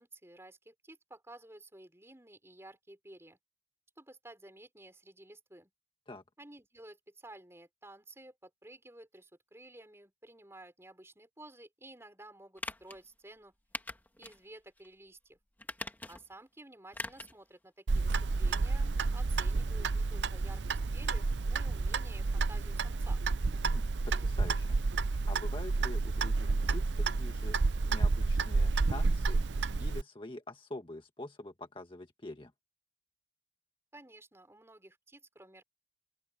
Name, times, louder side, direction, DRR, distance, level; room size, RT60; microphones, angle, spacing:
voice 1, 0.0-3.4 4.0-5.7 6.4-13.5 14.2-15.4 16.1-23.2 33.9-35.6, right 1 dB, 15° right, 5.3 m, -53 dB
sound 1, 12.6-13.0 13.7-14.4 14.8-14.9 15.6-16.3 16.9-17.4 17.7-17.8, left 2 dB, 10° left, 2.3 m, -42 dB
Clock, 17.9-30.0, right 3 dB, 85° right, 0.6 m, -30 dB
voice 2, 23.6-24.8 25.3-32.5, left 2 dB, 30° left, 1.5 m, -46 dB
open air
head